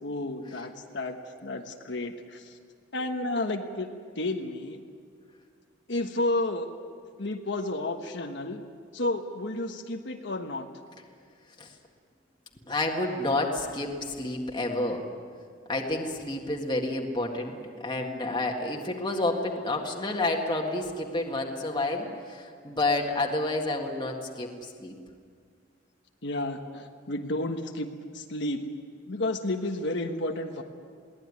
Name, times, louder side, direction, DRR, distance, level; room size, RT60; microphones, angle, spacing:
voice 1, 0.0-1.2 1.4-2.6 2.9-3.9 4.2-4.8 5.9-6.7 7.2-8.6 8.9-10.7 26.2-28.6 29.1-30.6, left 2 dB, 65° left, 4 dB, 1.3 m, -31 dB
voice 2, 12.7-15.0 15.7-17.6 17.8-24.9, left 2 dB, 25° left, 0 dB, 1.8 m, -29 dB
22.5 x 17.5 x 9.7 m, 2.1 s
head